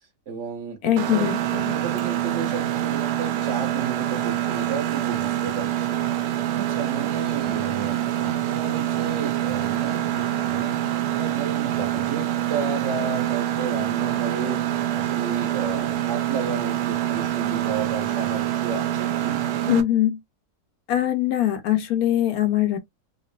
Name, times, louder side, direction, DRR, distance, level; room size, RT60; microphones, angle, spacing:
voice 1, 0.3-1.3 1.7-6.0 6.3-10.7 11.1-19.4, right 5 dB, 55° right, 1.4 m, -33 dB
voice 2, 0.8-1.7 19.7-20.2 20.9-22.8, left 12 dB, 75° left, 1.0 m, -22 dB
Mechanisms, 1.0-19.8, right 12 dB, 85° right, 1.1 m, -25 dB
3.2 x 2.5 x 2.2 m
omnidirectional pair, 1.6 m